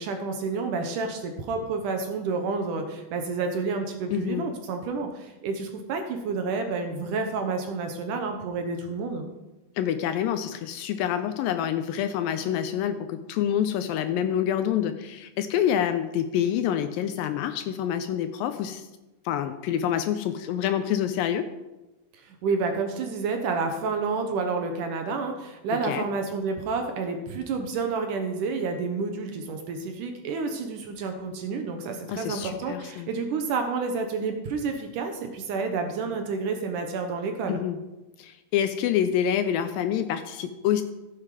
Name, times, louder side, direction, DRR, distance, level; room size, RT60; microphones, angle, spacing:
voice 1, 0.0-9.3 22.1-37.6, right 4 dB, 70° right, 5 dB, 2.2 m, -29 dB
voice 2, 4.1-4.5 9.8-18.8 19.3-21.5 25.8-26.0 32.1-33.1 37.5-37.8 38.2-40.8, left 10 dB, 80° left, 9 dB, 2.2 m, -27 dB
15.0 x 7.6 x 4.8 m, 1.1 s
omnidirectional pair, 4.4 m